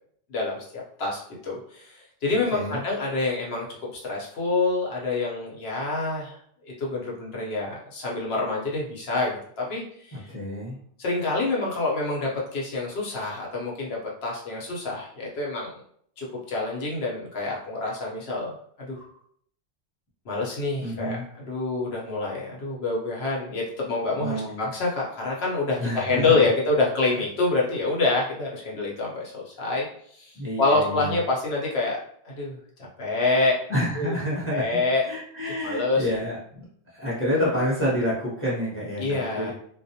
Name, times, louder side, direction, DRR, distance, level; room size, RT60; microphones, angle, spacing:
voice 1, 0.3-3.7 3.9-6.4 6.6-10.2 11.0-15.7 16.2-19.0 20.2-29.9 30.1-32.0 32.2-33.6 34.0-34.1 34.5-35.1 35.6-36.0 39.0-39.5, left 3 dB, 65° left, -3 dB, 1.0 m, -27 dB
voice 2, 2.5-2.8 10.1-10.8 20.8-21.2 24.2-24.7 25.8-26.4 30.3-31.2 33.7-34.6 35.0-36.6 36.9-39.5, equal, 15° left, -7 dB, 0.8 m, -28 dB
2.3 x 2.0 x 2.7 m, 0.63 s
omnidirectional pair, 1.2 m